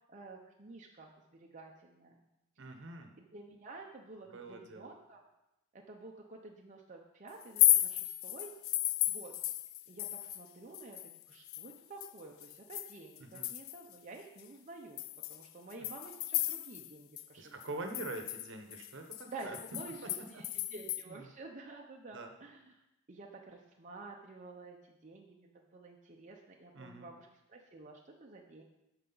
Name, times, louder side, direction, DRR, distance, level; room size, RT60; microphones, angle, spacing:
voice 1, 0.1-2.3 2.8-2.9 3.3-5.2 5.7-8.5 9.1-9.3 9.9-15.0 15.3-17.5 19.2-22.8 23.1-28.6, right 3 dB, 35° right, 0 dB, 0.6 m, -50 dB
voice 2, 2.6-3.1 4.3-4.9 13.2-13.5 15.8-15.9 17.4-19.6 20.0-21.2 22.1-22.3 26.7-27.1, right 2 dB, 60° right, 5 dB, 1.0 m, -45 dB
sound 1, 7.4-10.5 10.7-13.9 14.4-14.5 15.0-16.9 17.2-17.3 17.6-21.0, left 14 dB, 70° left, 0.4 m, -34 dB
12.5 x 4.9 x 4.0 m, 0.92 s
head